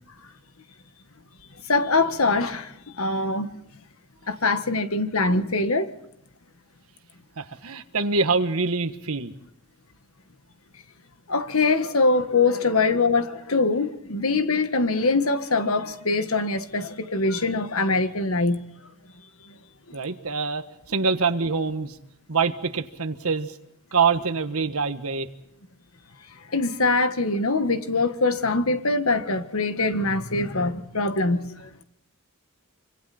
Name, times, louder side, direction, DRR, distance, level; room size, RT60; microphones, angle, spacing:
voice 1, 1.7-3.5 4.3-5.9 11.3-18.6 19.4-19.5 26.5-31.7, left 3 dB, 70° left, 1.6 m, -23 dB
voice 2, 7.4-9.3 19.9-22.0 22.3-23.6 23.9-25.3, right 4 dB, 75° right, 1.4 m, -25 dB
26.0 x 25.5 x 4.3 m
head